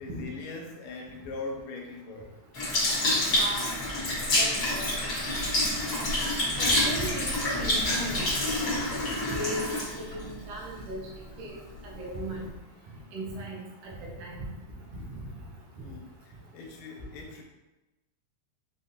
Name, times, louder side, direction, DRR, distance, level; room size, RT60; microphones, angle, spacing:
voice 1, 0.0-2.3 12.8-12.9 15.8-17.4, left 3 dB, 80° left, 0 dB, 1.9 m, -42 dB
Sink (filling or washing) / Liquid, 2.5-11.1 11.7-11.9, left 1 dB, 45° left, 1.3 m, -28 dB
voice 2, 3.3-3.7 4.3-4.4 4.7-4.9 6.6-8.8 9.3-11.0 11.4-11.6 12.0-12.5 13.1-13.6 13.8-14.5, right 1 dB, 80° right, -3 dB, 1.1 m, -36 dB
5.3 x 2.4 x 2.7 m, 1.1 s
omnidirectional pair, 3.4 m